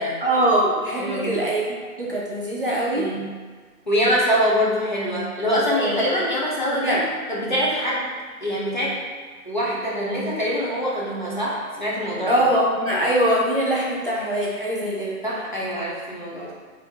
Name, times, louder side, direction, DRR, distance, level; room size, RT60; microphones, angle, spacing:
voice 1, 0.2-1.6 2.0-3.1 5.7-6.0 6.8-7.0 12.3-15.2, right 1 dB, 40° right, -5 dB, 0.4 m, -22 dB
voice 2, 1.0-1.4 3.0-3.2 3.9-7.0 7.3-8.1 8.4-9.0 9.5-12.3 15.2-16.5, equal, 35° left, -6 dB, 0.5 m, -24 dB
2.8 x 2.5 x 4.2 m, 1.6 s
hypercardioid pair, 160°, 45 cm